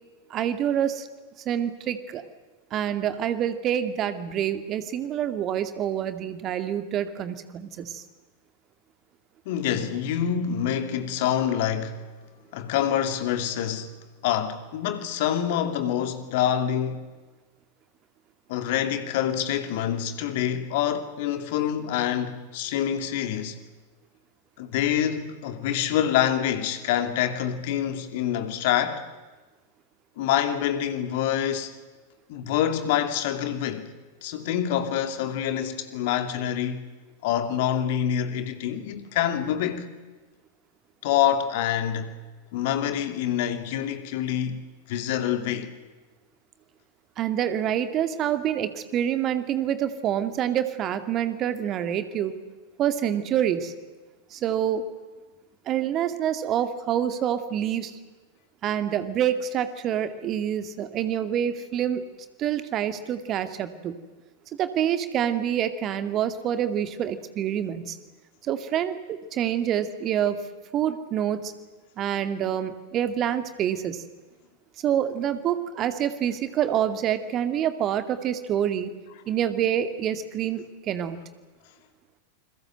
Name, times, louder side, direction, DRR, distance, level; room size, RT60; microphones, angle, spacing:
voice 1, 0.3-1.1 1.5-2.2 2.7-8.0 47.2-52.3 52.8-53.7 54.3-54.8 55.7-57.9 58.6-62.0 62.4-63.9 64.6-68.0 68.4-70.4 70.7-71.5 72.0-74.0 74.8-78.9 79.3-81.2, right 10 dB, 30° right, 2.3 m, -27 dB
voice 2, 9.5-12.0 12.5-13.9 14.2-17.1 18.5-23.6 24.6-29.0 30.2-31.7 32.3-33.9 34.2-36.8 37.2-39.9 41.0-42.1 42.5-44.6 44.9-45.7, left 10 dB, 50° left, 2.6 m, -26 dB
29.0 x 21.5 x 7.7 m
figure-of-eight pair, 90°, 0 cm